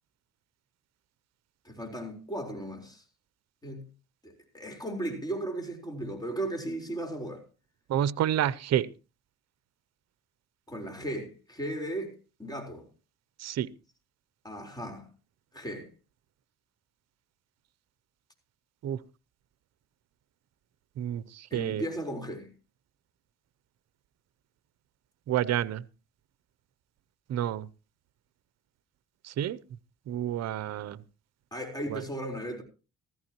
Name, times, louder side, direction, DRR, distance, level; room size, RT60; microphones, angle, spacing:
voice 1, 1.6-3.0 3.6-3.8 4.2-7.4 10.7-12.8 14.4-15.1 15.5-15.9 21.5-22.5 31.5-32.6, right 1 dB, 15° left, 4.0 m, -36 dB
voice 2, 7.9-8.9 13.4-13.7 18.8-19.0 21.0-21.9 25.3-25.8 27.3-27.7 29.2-29.6 30.1-31.0 31.9-32.0, right 11 dB, 60° right, 0.6 m, -29 dB
15.5 x 14.0 x 3.0 m
cardioid pair, 90°, 30 cm